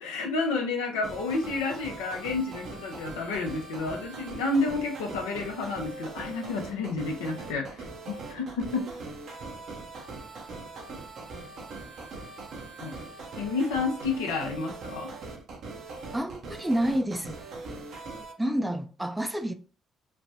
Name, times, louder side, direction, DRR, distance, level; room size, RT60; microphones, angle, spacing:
voice 1, 0.0-8.9 12.8-12.9 13.4-15.1 18.4-18.5, left 3 dB, 85° left, 0.6 m, -30 dB
sound 1, 1.0-18.3, right 3 dB, 60° right, 0.7 m, -41 dB
voice 2, 16.1-17.4 18.4-19.5, right 1 dB, 10° right, 0.4 m, -28 dB
3.2 x 2.1 x 2.7 m
hypercardioid pair, 55°, 0 cm